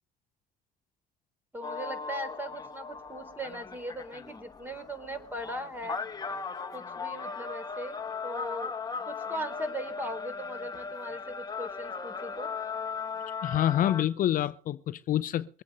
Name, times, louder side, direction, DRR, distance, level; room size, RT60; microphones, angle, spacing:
voice 1, 1.5-6.0 6.7-8.7 9.1-12.5, equal, 10° right, 3.5 m, -39 dB
sound 1, 1.6-14.0, left 5 dB, 25° left, 1.2 m, -38 dB
voice 2, 13.4-15.6, left 12 dB, 60° left, 0.6 m, -27 dB
22.5 x 8.3 x 5.3 m
supercardioid pair, 85°, 16 cm